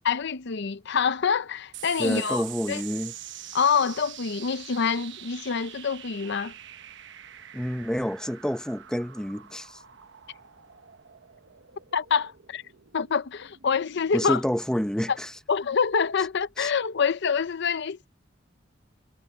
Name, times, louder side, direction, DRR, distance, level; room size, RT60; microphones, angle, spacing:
voice 1, 0.0-2.8 3.5-6.5 11.9-12.6 12.9-14.4 15.1-15.2 15.5-18.1, left 6 dB, 60° left, 0.6 m, -26 dB
sound 1, 1.7-16.5, right 11 dB, 65° right, 1.1 m, -45 dB
voice 2, 2.0-3.1 7.5-9.8 14.1-15.3 16.6-16.7, equal, 5° left, 0.6 m, -28 dB
head